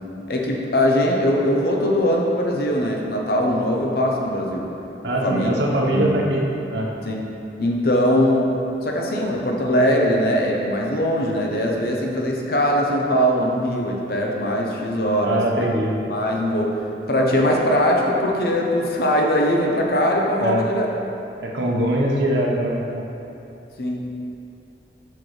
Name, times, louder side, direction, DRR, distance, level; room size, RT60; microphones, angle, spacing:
voice 1, 0.3-4.7 5.2-5.5 5.9-6.2 7.0-7.2 7.6-8.5 8.8-15.7 16.1-16.8 17.1-20.9 23.8-24.1, equal, 55° left, -1 dB, 0.7 m, -21 dB
voice 2, 5.0-6.4 6.7-6.9 15.2-15.9 20.4-20.6 21.4-23.0, right 1 dB, 75° right, -2 dB, 0.9 m, -22 dB
6.6 x 6.2 x 3.2 m, 2.8 s
head